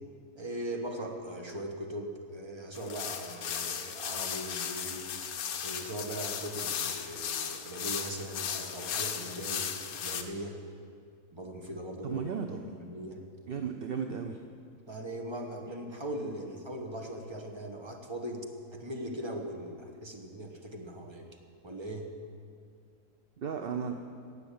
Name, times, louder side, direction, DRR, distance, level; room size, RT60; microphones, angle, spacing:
voice 1, 0.4-5.1 5.6-9.7 10.0-10.6 11.3-12.2 12.8-13.2 14.9-21.3 21.6-22.1, right 1 dB, 20° right, 2 dB, 1.3 m, -40 dB
sound 1, 2.7-10.2, left 8 dB, 70° left, 1.3 m, -36 dB
voice 2, 12.0-12.8 13.5-14.4 23.4-23.9, right 6 dB, 50° right, 5 dB, 0.7 m, -35 dB
18.0 x 6.6 x 8.6 m, 2.3 s
omnidirectional pair, 1.7 m